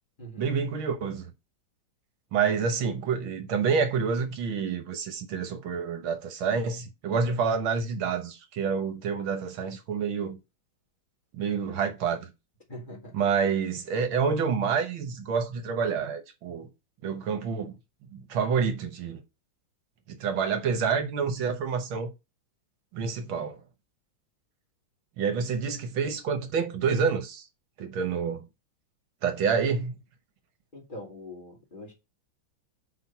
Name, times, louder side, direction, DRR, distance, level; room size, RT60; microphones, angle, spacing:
voice 1, 0.4-1.3 2.3-10.4 11.3-12.3 13.1-16.7 17.0-17.7 18.1-19.2 20.1-22.1 22.9-23.6 25.2-27.5 27.8-28.4 29.2-30.0, right 6 dB, 75° right, 1.8 m, -28 dB
voice 2, 12.7-13.2 30.7-31.9, left 1 dB, 25° left, 2.4 m, -43 dB
6.3 x 4.6 x 5.5 m
omnidirectional pair, 2.3 m